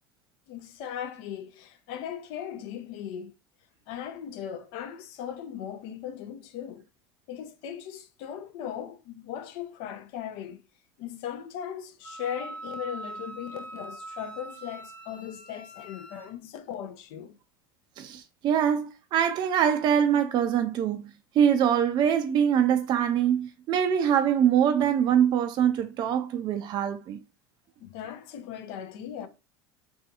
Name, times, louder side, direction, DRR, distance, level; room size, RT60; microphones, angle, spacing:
voice 1, 0.5-3.3 3.9-6.9 7.3-10.6 11.0-17.4 27.8-29.3, left 9 dB, 60° left, 0.5 m, -38 dB
Wind instrument woodwind instrument, 12.0-16.3, right 2 dB, 10° left, 0.7 m, -42 dB
voice 2, 18.0-21.0 21.4-27.2, right 9 dB, 40° right, 0.3 m, -24 dB
2.6 x 2.3 x 2.4 m
hypercardioid pair, 85°, 11 cm